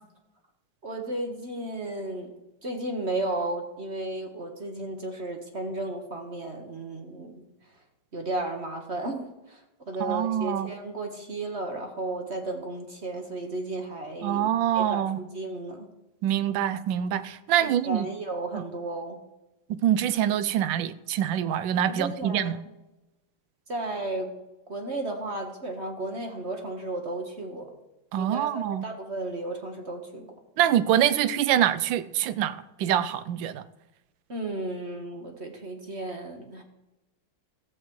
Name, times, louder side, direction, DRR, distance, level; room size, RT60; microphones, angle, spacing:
voice 1, 0.8-2.3 2.6-7.4 8.1-9.6 9.9-15.9 17.6-19.2 21.9-22.5 23.7-24.3 24.7-27.7 28.2-30.3 34.3-36.6, right 2 dB, 35° right, 1.4 m, -34 dB
voice 2, 10.0-10.7 14.2-15.2 16.2-18.1 18.5-18.6 19.7-22.6 28.1-28.8 30.6-33.6, right 10 dB, 75° right, 1.2 m, -25 dB
15.0 x 14.5 x 3.2 m
omnidirectional pair, 2.3 m